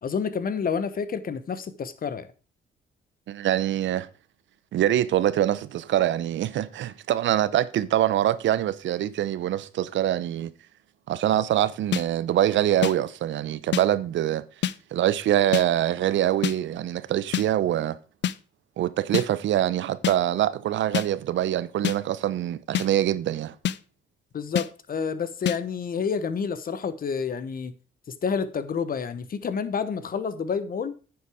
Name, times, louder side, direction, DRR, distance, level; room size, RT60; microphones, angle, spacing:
voice 1, 0.0-2.3 24.3-27.7 28.2-31.0, left 6 dB, 45° left, 1.1 m, -29 dB
voice 2, 3.3-4.1 4.7-10.5 11.1-14.4 14.9-18.0 18.8-23.5, right 12 dB, 70° right, 0.7 m, -24 dB
sound 1, 11.9-12.0 12.8-12.9 13.7-13.8 14.6-14.8 15.5-15.7 16.4-16.6 17.3-17.5 18.2-18.4 19.1-19.3 20.0-20.2 20.9-21.1 21.8-22.0 22.7-22.9 23.6-23.8 24.6-24.7 25.5-25.6, left 10 dB, 65° left, 0.6 m, -25 dB
9.6 x 7.0 x 4.9 m
cardioid pair, 90°, 20 cm